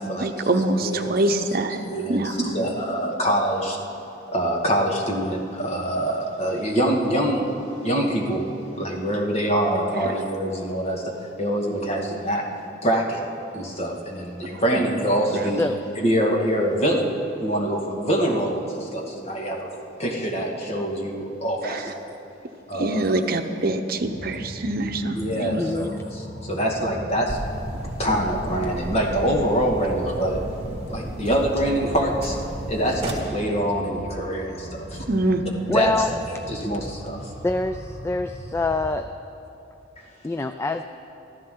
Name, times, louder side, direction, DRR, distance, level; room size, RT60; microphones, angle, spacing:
voice 1, 0.2-2.5 9.9-10.1 14.5-14.8 21.6-21.9 22.7-25.6 35.1-35.4, right 2 dB, 55° right, 7 dB, 0.9 m, -25 dB
voice 2, 0.8-1.1 1.4-1.5 1.9-3.8 4.3-7.5 7.8-8.5 8.8-12.5 12.8-13.2 13.5-15.6 16.0-17.1 17.4-19.7 20.0-22.0 22.7-23.2 25.2-27.4 28.0-30.4 30.9-32.4 32.7-35.1 35.7-36.1 36.5-37.3, right 1 dB, 35° left, -1 dB, 2.0 m, -25 dB
sound 1, 23.9-38.9, equal, 70° left, 2.9 m, -39 dB
voice 3, 25.6-25.9 35.7-36.1 37.4-39.1 40.2-40.8, left 3 dB, 15° left, 8 dB, 0.3 m, -25 dB
sound 2, 27.3-33.1, right 1 dB, 30° right, 2.4 m, -35 dB
24.5 x 14.0 x 3.9 m, 2.9 s
head